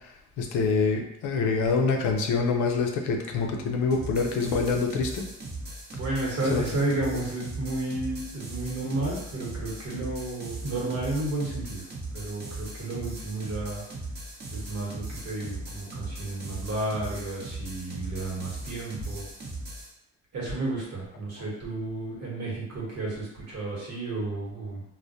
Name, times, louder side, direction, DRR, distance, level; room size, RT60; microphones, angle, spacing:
voice 1, 0.4-5.3 6.5-6.6, left 4 dB, 80° left, 3 dB, 0.5 m, -25 dB
sound 1, 3.9-19.9, right 2 dB, 35° right, 0.6 m, -38 dB
voice 2, 5.9-13.8 14.5-19.3 20.3-24.8, right 2 dB, 55° right, -4 dB, 1.0 m, -32 dB
2.2 x 2.1 x 2.6 m, 0.83 s
cardioid pair, 90°, 30 cm